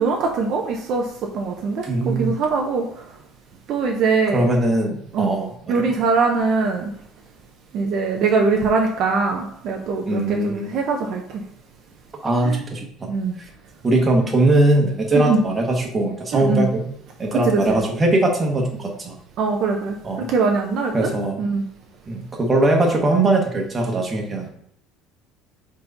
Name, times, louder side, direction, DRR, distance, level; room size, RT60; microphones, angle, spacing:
voice 1, 0.0-2.9 3.7-4.5 5.1-5.3 5.7-6.9 7.7-11.4 12.4-12.6 13.1-13.3 15.1-15.4 16.3-16.7 17.3-17.8 19.4-21.1 21.4-21.6, right 4 dB, 45° right, 2 dB, 0.7 m, -22 dB
voice 2, 1.9-2.3 4.3-5.8 10.1-10.7 12.2-12.9 13.8-16.9 17.2-19.1 20.0-20.3 20.9-21.4 22.1-24.5, right 2 dB, 15° right, 1 dB, 1.2 m, -20 dB
4.4 x 4.1 x 5.2 m, 0.72 s
cardioid pair, 160°, 0 cm